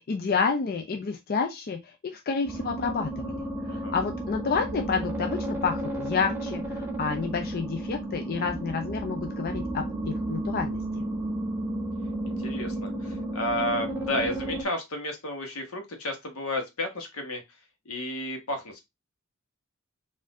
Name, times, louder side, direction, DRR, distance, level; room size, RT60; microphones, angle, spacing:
voice 1, 0.0-11.0, left 5 dB, 45° left, 5 dB, 0.4 m, -30 dB
sound 1, 2.5-14.6, right 1 dB, 10° right, 0.8 m, -33 dB
voice 2, 12.3-17.4 17.8-18.8, left 1 dB, 80° left, 4 dB, 1.3 m, -32 dB
4.2 x 2.6 x 3.6 m, 0.20 s
head